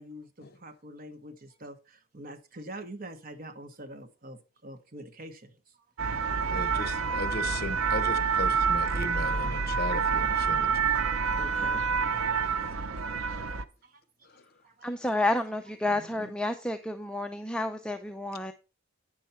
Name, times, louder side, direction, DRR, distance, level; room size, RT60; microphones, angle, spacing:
voice 1, 0.0-5.5 11.3-11.9 12.5-12.6 13.0-13.4 13.8-14.0 14.6-14.9 15.9-16.3, right 1 dB, 45° right, 1.3 m, -45 dB
sound 1, 6.0-13.6, right 5 dB, 90° right, 0.7 m, -27 dB
voice 2, 6.5-11.0 14.3-14.5, left 2 dB, 50° left, 1.0 m, -37 dB
voice 3, 14.8-18.5, left 2 dB, 5° left, 0.5 m, -30 dB
9.3 x 6.9 x 4.3 m
head